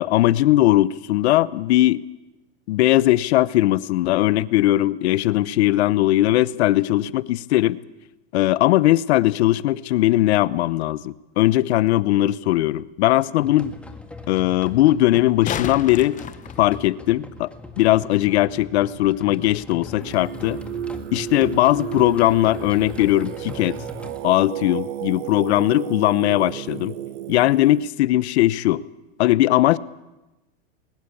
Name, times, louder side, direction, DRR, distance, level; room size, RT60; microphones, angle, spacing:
voice 1, 0.0-2.0 2.7-7.8 8.3-13.7 14.3-16.2 16.6-17.5 17.8-20.6 21.1-23.8 24.2-26.9 27.3-28.8 29.2-29.8, left 15 dB, 75° left, 18 dB, 0.9 m, -19 dB
sound 1, 13.4-24.3, left 3 dB, 5° left, 1.8 m, -40 dB
sound 2, 15.1-17.2 20.1-20.2, left 9 dB, 25° left, 1.0 m, -32 dB
Singing, 20.0-27.9, right 12 dB, 75° right, 1.5 m, -33 dB
21.0 x 19.5 x 8.5 m, 1.0 s
supercardioid pair, 130°, 33 cm